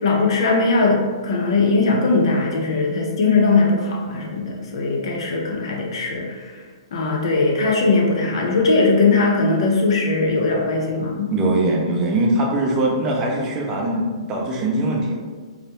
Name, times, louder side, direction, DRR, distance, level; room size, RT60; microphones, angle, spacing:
voice 1, 0.0-6.6 6.9-11.3, left 3 dB, 65° left, -1 dB, 0.5 m, -19 dB
voice 2, 11.3-15.2, right 1 dB, 20° right, -1 dB, 0.4 m, -21 dB
2.3 x 2.0 x 2.9 m, 1.4 s
hypercardioid pair, 145°, 3 cm